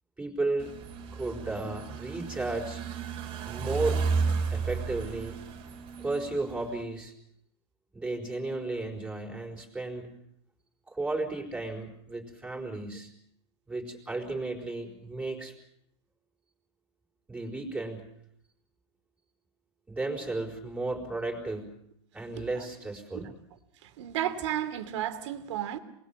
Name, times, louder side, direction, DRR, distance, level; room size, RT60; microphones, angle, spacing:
voice 1, 0.2-0.7 1.1-2.8 3.5-4.0 4.5-5.4 6.0-7.1 7.9-10.1 10.9-13.1 13.7-15.5 17.3-18.1 19.9-21.7 22.1-23.3, right 2 dB, 10° right, 4.5 m, -34 dB
sound 1, 0.6-6.8, right 5 dB, 35° right, 3.0 m, -33 dB
voice 2, 24.0-25.8, right 11 dB, 75° right, 2.8 m, -32 dB
28.0 x 21.0 x 7.3 m
supercardioid pair, 155°, 15 cm